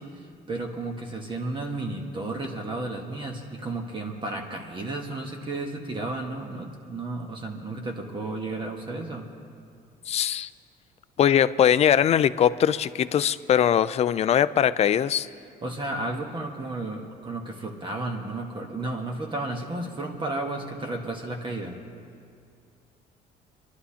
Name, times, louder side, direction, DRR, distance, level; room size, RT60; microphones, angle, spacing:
voice 1, 0.0-9.3 15.6-21.8, right 2 dB, 30° right, 1 dB, 1.2 m, -33 dB
voice 2, 10.1-10.5 11.2-15.3, left 9 dB, 40° left, 15 dB, 0.4 m, -21 dB
29.0 x 11.5 x 2.8 m, 2.4 s
cardioid pair, 110°, 17 cm